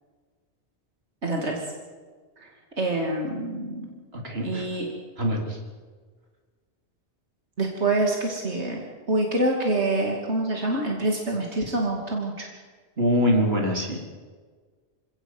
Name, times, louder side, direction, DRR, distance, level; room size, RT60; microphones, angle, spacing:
voice 1, 1.2-1.6 2.4-2.5 2.8-3.9 4.4-4.9 7.6-8.8 9.1-12.5, right 2 dB, 85° right, 0 dB, 3.0 m, -26 dB
voice 2, 4.1-4.7 5.2-5.6 13.0-14.0, equal, 65° right, 1 dB, 4.1 m, -24 dB
27.0 x 17.5 x 7.9 m, 1.5 s
omnidirectional pair, 1.1 m